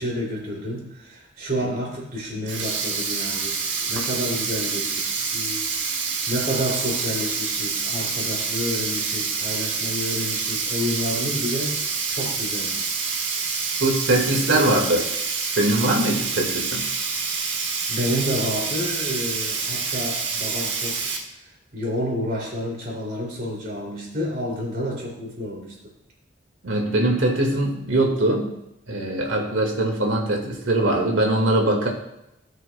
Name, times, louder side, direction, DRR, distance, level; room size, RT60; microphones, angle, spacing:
voice 1, 0.0-3.6 3.9-13.0 14.5-14.8 17.9-21.1 21.4-21.5 21.7-25.8, equal, 45° right, -2 dB, 2.8 m, -30 dB
Sink (filling or washing), 2.3-21.2, right 5 dB, 70° right, 1.3 m, -27 dB
voice 2, 13.8-15.0 15.6-16.9 26.6-28.5 28.9-31.9, right 1 dB, 85° right, 1 dB, 1.8 m, -21 dB
17.0 x 6.3 x 2.2 m, 0.87 s
head